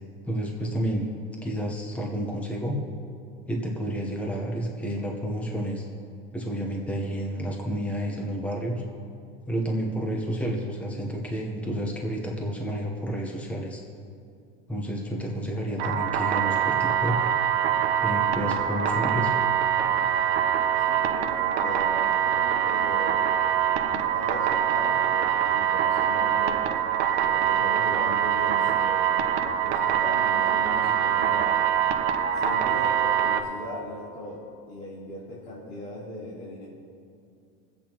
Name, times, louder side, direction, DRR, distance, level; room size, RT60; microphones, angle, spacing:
voice 1, 0.2-1.1 1.4-2.8 3.5-5.9 6.3-8.8 9.5-13.8 14.7-17.2 18.0-19.3, equal, 5° left, -1 dB, 1.0 m, -30 dB
sound 1, 15.8-33.4, right 9 dB, 75° right, 1.0 m, -24 dB
voice 2, 20.7-23.3 23.8-26.6 27.1-31.5 32.3-34.4 34.7-36.7, left 1 dB, 80° left, -9 dB, 3.5 m, -38 dB
25.0 x 8.5 x 3.0 m, 2.4 s
cardioid pair, 155°, 31 cm